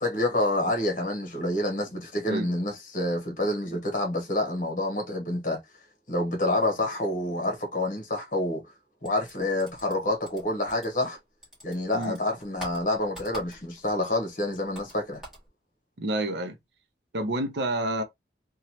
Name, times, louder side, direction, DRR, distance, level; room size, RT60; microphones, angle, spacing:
voice 1, 0.0-5.6 6.1-8.7 9.0-11.2 11.6-15.2, left 1 dB, 45° left, 1.0 m, -28 dB
sound 1, 9.0-11.2 11.4-13.9 14.2-15.5, right 1 dB, 5° right, 1.4 m, -45 dB
voice 2, 16.0-16.6 17.1-18.0, right 1 dB, 75° right, 0.7 m, -28 dB
3.0 x 2.3 x 2.8 m
head